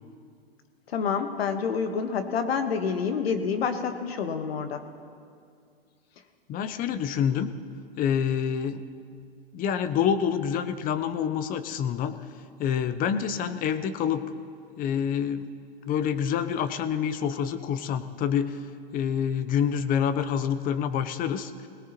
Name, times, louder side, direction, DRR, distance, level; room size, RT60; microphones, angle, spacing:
voice 1, 0.9-4.8, left 6 dB, 75° left, 7 dB, 1.4 m, -28 dB
voice 2, 6.5-7.5 8.0-8.8 9.5-12.2 12.6-14.2 14.8-15.5 15.8-18.6 18.9-21.7, left 8 dB, 30° left, 12 dB, 0.7 m, -27 dB
20.5 x 18.0 x 3.0 m, 2.3 s
hypercardioid pair, 120°, 31 cm